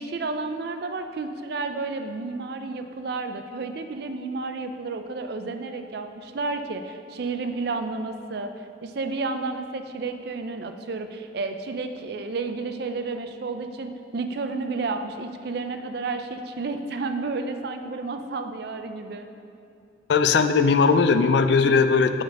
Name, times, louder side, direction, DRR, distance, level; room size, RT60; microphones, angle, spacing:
voice 1, 0.0-8.5 8.8-19.3, right 3 dB, 55° right, 7 dB, 0.4 m, -31 dB
voice 2, 20.1-22.2, left 5 dB, 60° left, 10 dB, 0.3 m, -19 dB
6.8 x 3.9 x 6.3 m, 2.6 s
head